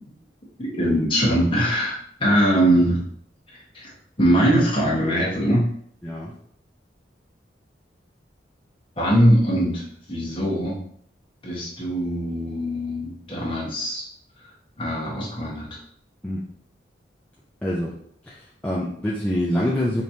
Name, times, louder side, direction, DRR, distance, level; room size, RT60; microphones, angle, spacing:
voice 1, 0.6-3.0 3.5-3.9 4.2-5.7 9.0-9.8 10.1-10.8 11.4-14.1 14.8-15.7, equal, 25° left, -5 dB, 1.3 m, -21 dB
voice 2, 6.0-6.3 16.2-16.4 17.6-17.9 18.3-20.0, left 1 dB, 10° left, -6 dB, 0.5 m, -25 dB
5.1 x 3.0 x 2.7 m, 0.63 s
head